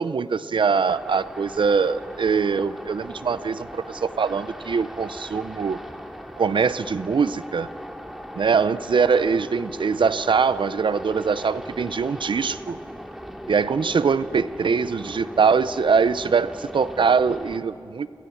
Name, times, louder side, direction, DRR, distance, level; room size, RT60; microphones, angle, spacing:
voice 1, 0.0-5.8 6.4-7.7 8.4-12.8 13.5-18.1, right 5 dB, 75° right, 15 dB, 0.6 m, -22 dB
sound 1, 0.9-17.6, equal, 5° right, 2.1 m, -39 dB
Brass instrument, 1.5-9.2, right 1 dB, 20° left, 4.2 m, -51 dB
29.5 x 24.5 x 7.1 m, 2.6 s
wide cardioid pair, 80°, 8 cm